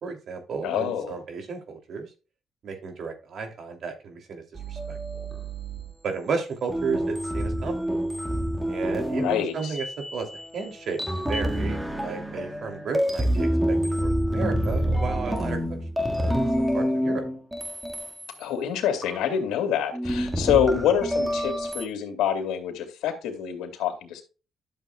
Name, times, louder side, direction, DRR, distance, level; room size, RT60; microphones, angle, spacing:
voice 1, 0.0-2.1 2.6-5.0 6.0-7.7 8.7-9.9 10.1-15.6 16.2-17.2, right 5 dB, 60° right, 2.8 m, -33 dB
voice 2, 0.6-1.2 9.1-9.7 18.4-24.2, left 8 dB, 85° left, 2.5 m, -26 dB
sound 1, 4.5-5.9 6.7-10.7 11.0-18.4 19.0-19.2 19.9-21.9, equal, 10° right, 1.8 m, -27 dB
11.5 x 7.4 x 2.3 m
cardioid pair, 90°, 0 cm